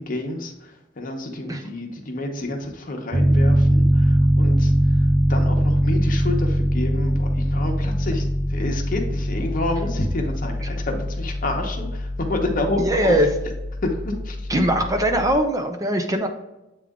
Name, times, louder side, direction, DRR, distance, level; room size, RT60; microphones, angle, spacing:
voice 1, 0.0-13.2 13.8-14.4, left 2 dB, 50° left, 3 dB, 1.1 m, -29 dB
Piano, 3.1-15.3, equal, 50° right, 0.8 m, -22 dB
voice 2, 12.8-13.3 14.5-16.3, equal, 20° right, 5 dB, 0.6 m, -21 dB
8.0 x 3.4 x 3.7 m, 0.98 s
head